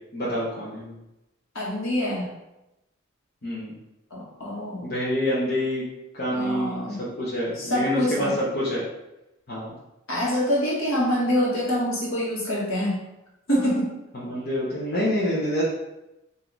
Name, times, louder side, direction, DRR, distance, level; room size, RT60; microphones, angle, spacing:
voice 1, 0.1-1.0 3.4-3.7 4.8-5.9 6.1-8.8 9.5-9.7 14.1-15.6, left 1 dB, 45° left, -7 dB, 0.9 m, -27 dB
voice 2, 1.5-2.3 4.1-4.9 6.3-7.0 7.6-8.4 10.1-13.0 13.5-13.9, equal, 70° left, -4 dB, 1.4 m, -25 dB
4.0 x 2.7 x 4.5 m, 0.94 s
head